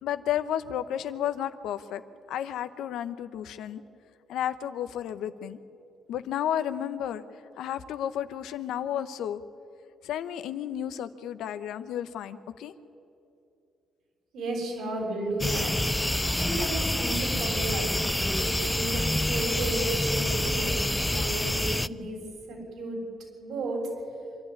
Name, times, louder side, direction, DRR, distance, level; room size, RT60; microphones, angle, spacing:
voice 1, 0.0-2.0 2.3-3.8 4.3-5.6 6.1-7.2 7.6-9.4 10.0-12.7, left 10 dB, 80° left, 11 dB, 0.9 m, -32 dB
voice 2, 14.3-15.7 16.4-22.2 22.5-23.0 23.4-23.9, right 2 dB, 80° right, 0 dB, 7.3 m, -33 dB
sound 1, 15.4-21.9, left 1 dB, 5° left, 0.4 m, -27 dB
25.5 x 12.0 x 9.7 m, 2.7 s
cardioid pair, 90°, 0 cm